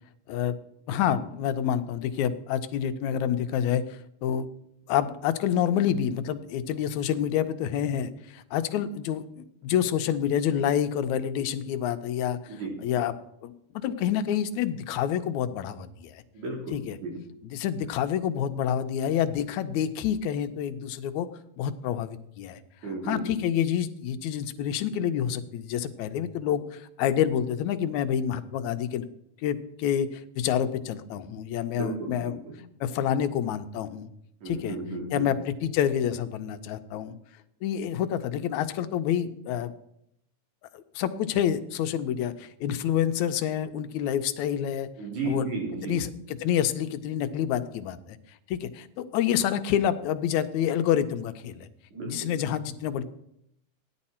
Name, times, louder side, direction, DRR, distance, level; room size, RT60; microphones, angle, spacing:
voice 1, 0.9-4.5 4.9-12.5 12.8-13.1 13.4-16.2 16.7-17.0 17.5-21.3 21.6-22.6 23.0-29.1 29.4-32.4 32.8-34.1 34.5-34.8 35.1-37.1 37.6-39.7 40.7-44.9 45.3-45.5 45.9-48.2 48.5-51.7 52.1-53.0, left 9 dB, 80° left, 10 dB, 2.0 m, -28 dB
voice 2, 16.3-16.8 17.0-17.1 22.8-23.4 31.7-32.5 34.4-35.3 45.0-46.0 51.9-52.3, right 2 dB, 80° right, -1 dB, 4.7 m, -34 dB
15.5 x 10.5 x 4.3 m, 0.76 s
omnidirectional pair, 3.4 m